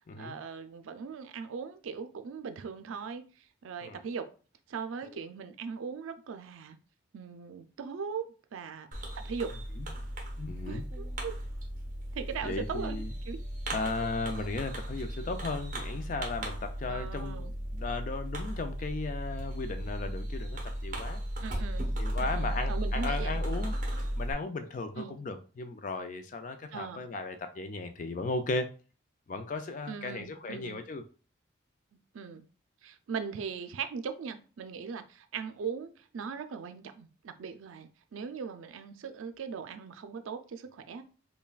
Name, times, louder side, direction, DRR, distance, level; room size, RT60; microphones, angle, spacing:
voice 1, 0.2-4.3 4.7-6.8 7.1-8.3 8.5-8.9 9.1-9.5 10.7-11.3 12.1-13.4 14.0-14.1 16.9-17.5 21.4-21.9 22.2-23.4 25.0-25.2 26.7-27.0 29.9-30.8 32.1-32.4 32.8-41.0, right 6 dB, 85° right, 0.4 m, -39 dB
Fireworks, 8.9-24.3, equal, 40° right, 0.9 m, -35 dB
voice 2, 10.4-10.8 12.4-13.1 13.7-21.2 22.0-23.8 24.2-28.7 29.3-31.1, left 3 dB, 40° left, 0.4 m, -36 dB
5.4 x 2.2 x 2.3 m
head